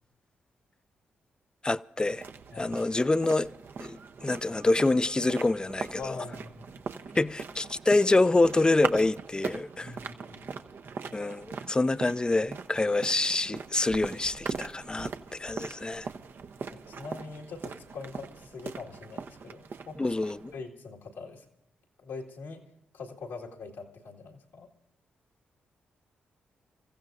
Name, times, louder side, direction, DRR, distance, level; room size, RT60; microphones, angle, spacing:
voice 1, 1.6-2.2 2.6-3.5 3.8-6.2 7.2-9.9 11.1-16.1 20.0-20.5, left 2 dB, 20° left, 0.5 m, -26 dB
sound 1, 2.0-20.6, right 5 dB, 60° right, 0.8 m, -41 dB
voice 2, 6.0-6.7 9.8-10.5 16.6-20.1 20.5-21.4 22.0-22.6 22.9-24.7, left 4 dB, 85° left, 2.0 m, -43 dB
29.0 x 15.0 x 2.6 m
supercardioid pair, 45°, 4 cm